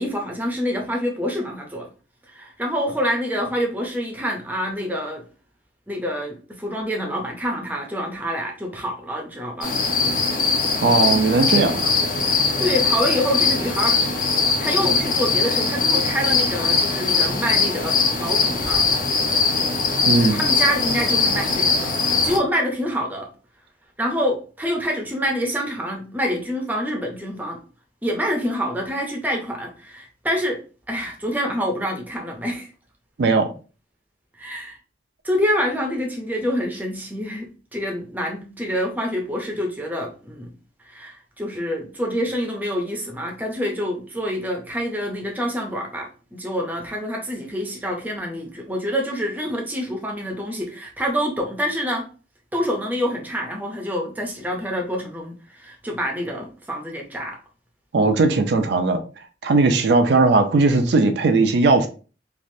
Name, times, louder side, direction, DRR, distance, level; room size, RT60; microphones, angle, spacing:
voice 1, 0.0-1.9 2.3-5.2 5.9-9.7 12.3-14.0 14.6-18.9 20.3-23.3 24.0-27.6 28.0-30.6 30.9-32.7 34.4-34.8 35.2-40.5 40.8-52.1 52.5-57.4, equal, 10° right, 0.6 m, -26 dB
sound 1, 9.6-22.4, left 4 dB, 45° left, 0.6 m, -21 dB
voice 2, 10.8-11.9 20.0-20.4 33.2-33.5 57.9-59.0 59.4-61.9, right 3 dB, 75° right, 0.4 m, -18 dB
3.2 x 2.5 x 2.6 m
head